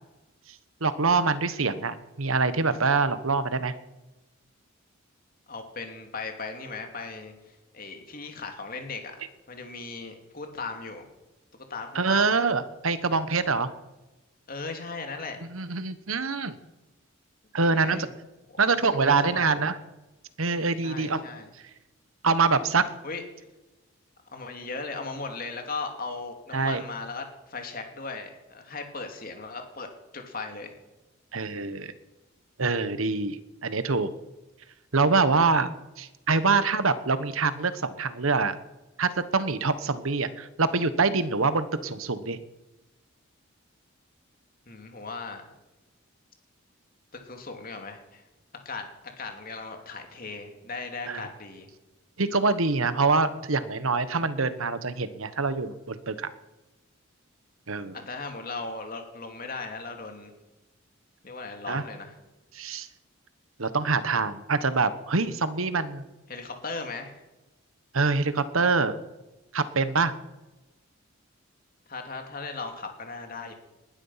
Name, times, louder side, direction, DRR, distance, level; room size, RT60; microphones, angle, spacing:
voice 1, 0.8-3.7 11.9-13.7 15.5-16.6 17.5-18.1 18.6-19.8 20.4-21.2 22.2-22.8 26.5-26.8 31.3-31.9 32.6-33.4 33.6-34.1 34.9-38.6 39.0-42.4 51.1-51.3 52.2-56.3 57.7-58.0 61.7-61.8 62.5-62.9 63.6-66.0 67.9-69.0 69.5-70.1, right 4 dB, 80° right, 13 dB, 1.2 m, -25 dB
voice 2, 5.5-9.1 9.5-11.1 11.5-12.4 14.5-15.5 17.6-18.1 18.5-18.7 19.1-19.7 20.8-21.5 23.0-23.2 24.3-29.9 30.1-30.7 44.7-45.5 47.1-48.2 48.6-48.9 49.2-51.7 57.9-60.3 61.2-62.1 66.3-67.2 71.9-73.5, left 4 dB, 45° left, 4 dB, 2.7 m, -37 dB
20.0 x 12.0 x 5.8 m, 1.1 s
head